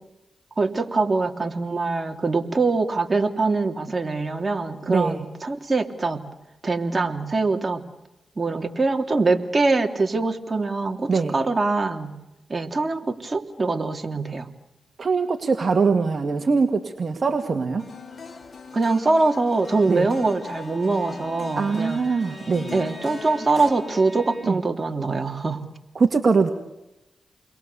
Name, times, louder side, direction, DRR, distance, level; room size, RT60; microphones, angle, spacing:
voice 1, 0.6-6.2 6.6-7.8 8.4-12.1 12.5-14.5 18.7-22.0 22.7-25.6, right 3 dB, 35° right, 3 dB, 3.2 m, -23 dB
voice 2, 4.9-5.2 11.1-11.4 15.0-17.9 19.9-20.1 21.6-22.7 24.4-24.6 26.0-26.5, right 4 dB, 55° right, 5 dB, 2.0 m, -22 dB
sound 1, 17.8-23.7, left 5 dB, 50° left, 4.8 m, -41 dB
Bowed string instrument, 19.5-24.7, equal, 10° right, 6.6 m, -43 dB
30.0 x 22.5 x 7.0 m, 0.94 s
cardioid pair, 60°, 0 cm